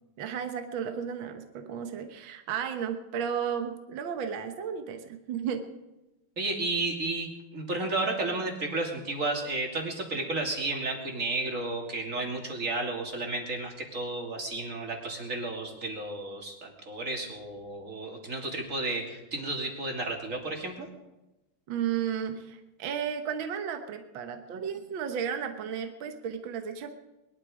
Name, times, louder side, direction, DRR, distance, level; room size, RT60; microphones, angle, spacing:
voice 1, 0.2-5.7 21.7-26.9, right 8 dB, 65° right, 6 dB, 1.9 m, -33 dB
voice 2, 6.4-20.9, right 2 dB, 35° right, 2 dB, 3.1 m, -32 dB
21.5 x 12.5 x 5.0 m, 1.0 s
omnidirectional pair, 2.4 m